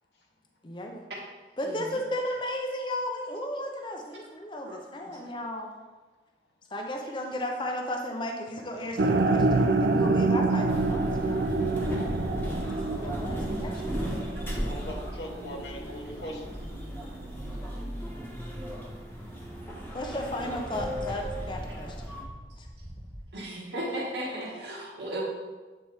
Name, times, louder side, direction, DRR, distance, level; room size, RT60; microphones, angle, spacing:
voice 1, 0.6-1.0 1.6-5.7 6.7-12.1 12.4-12.6 12.9-14.3 19.9-22.1 22.6-22.7, left 1 dB, 25° left, 2 dB, 0.5 m, -35 dB
voice 2, 8.7-9.0 14.7-16.6 24.3-24.6, left 1 dB, 75° left, 0 dB, 1.0 m, -42 dB
sound 1, 9.0-15.1, right 3 dB, 60° right, 0.4 m, -26 dB
sound 2, 10.7-22.2, equal, 10° left, 1.0 m, -36 dB
sound 3, 12.5-13.0 13.6-13.8 14.5-14.6 15.0-15.1 16.0-16.1 16.4-16.5 18.5-18.6 18.8-23.2, equal, 20° right, 1.1 m, -43 dB
voice 3, 23.3-25.3, right 1 dB, 80° right, -5 dB, 1.1 m, -35 dB
7.8 x 4.1 x 3.3 m, 1.3 s
head